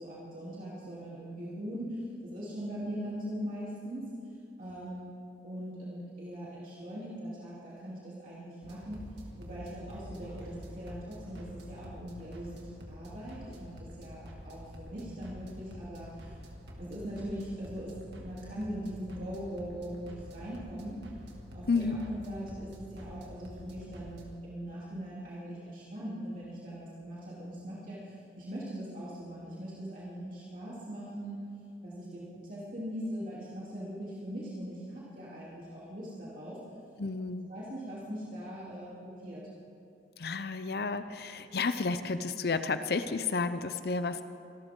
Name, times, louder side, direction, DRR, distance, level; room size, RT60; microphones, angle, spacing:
voice 1, 0.0-4.1 4.6-5.1 5.4-9.0 9.4-16.4 16.8-21.0 21.5-31.4 31.8-36.6 37.5-39.5, equal, 50° right, -8 dB, 3.3 m, -41 dB
sound 1, 8.6-24.3, equal, 80° right, 2.2 m, -48 dB
voice 2, 21.7-22.1 37.0-37.5 40.2-44.2, left 4 dB, 60° left, 11 dB, 0.6 m, -31 dB
25.5 x 13.0 x 3.8 m, 2.7 s
head